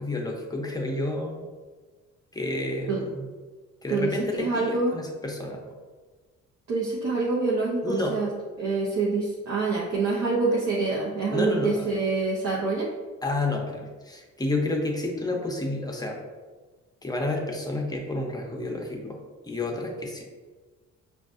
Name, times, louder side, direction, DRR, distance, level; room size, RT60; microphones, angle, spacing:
voice 1, 0.0-1.5 2.3-3.3 3.8-5.6 7.8-8.2 11.3-11.9 13.2-16.2 17.0-19.2 19.4-20.2, left 2 dB, 15° left, 0 dB, 0.7 m, -30 dB
voice 2, 3.9-5.0 6.7-8.3 8.6-12.9, right 3 dB, 60° right, -5 dB, 0.8 m, -26 dB
5.1 x 2.4 x 2.5 m, 1.3 s
cardioid pair, 90°, 30 cm